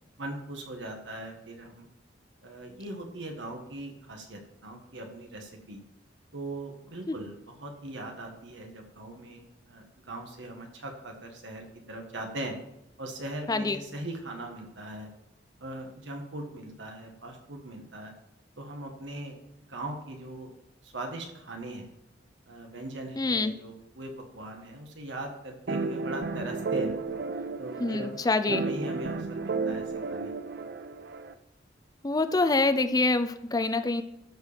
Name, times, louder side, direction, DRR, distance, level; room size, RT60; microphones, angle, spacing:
voice 1, 0.2-1.9 2.4-5.8 6.3-12.5 13.0-15.1 15.6-18.1 18.6-19.4 19.7-20.5 20.8-21.9 22.5-26.9 27.6-28.2 28.4-30.3, right 1 dB, 80° right, 2 dB, 1.6 m, -40 dB
voice 2, 13.5-13.8 23.2-23.5 27.8-28.6 32.0-34.0, left 3 dB, 20° left, 10 dB, 0.5 m, -26 dB
sound 1, 25.7-31.3, right 4 dB, 55° right, 0.5 m, -33 dB
12.5 x 4.7 x 5.1 m, 0.88 s
head